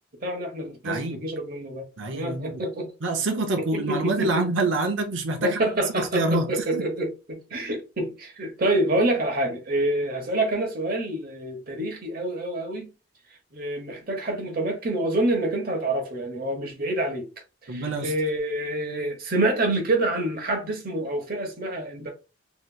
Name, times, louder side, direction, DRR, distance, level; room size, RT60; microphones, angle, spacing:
voice 1, 0.2-1.9 2.1-2.9 3.6-4.4 5.4-12.9 13.5-17.3 17.6-22.1, right 1 dB, 45° right, 1.0 m, -27 dB
voice 2, 0.8-1.2 2.0-2.6 3.0-5.6 6.0-6.8 17.7-18.1, right 2 dB, 70° right, 0.7 m, -26 dB
3.2 x 2.9 x 2.4 m
head